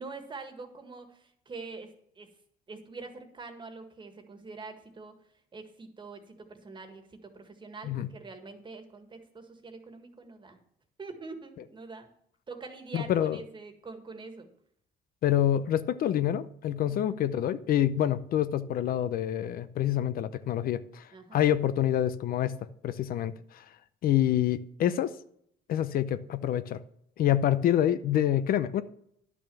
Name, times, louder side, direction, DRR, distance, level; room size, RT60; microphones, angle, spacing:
voice 1, 0.0-2.3 2.7-5.1 5.5-10.6 11.0-12.1 12.5-14.5 16.9-17.2 21.1-21.4 23.1-23.3, right 4 dB, 30° right, 6 dB, 1.7 m, -45 dB
voice 2, 12.9-13.4 15.2-22.5 22.8-23.6 24.0-25.1 25.7-26.8 27.2-28.8, left 11 dB, 60° left, 13 dB, 0.6 m, -27 dB
10.5 x 6.1 x 7.0 m, 0.71 s
cardioid pair, 110°, 17 cm